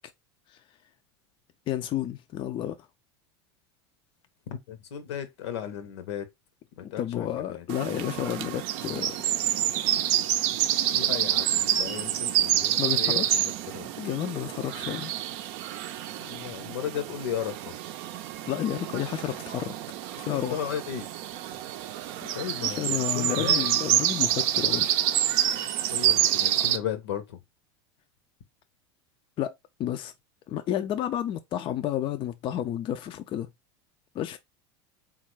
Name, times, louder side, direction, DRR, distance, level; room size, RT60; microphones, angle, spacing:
voice 1, 1.7-2.8 6.8-9.2 12.8-13.5 14.0-15.1 18.5-19.7 20.2-20.6 22.6-25.0 29.4-29.5 29.8-30.1 30.5-33.5 34.1-34.4, left 11 dB, 35° left, 0.4 m, -31 dB
voice 2, 4.5-6.3 6.8-7.6 10.9-13.9 16.2-17.7 20.3-21.1 22.3-23.7 25.9-27.4, left 9 dB, 75° left, 0.8 m, -35 dB
sound 1, 7.7-26.8, right 12 dB, 60° right, 0.5 m, -27 dB
3.6 x 2.4 x 3.1 m
hypercardioid pair, 95°, 14 cm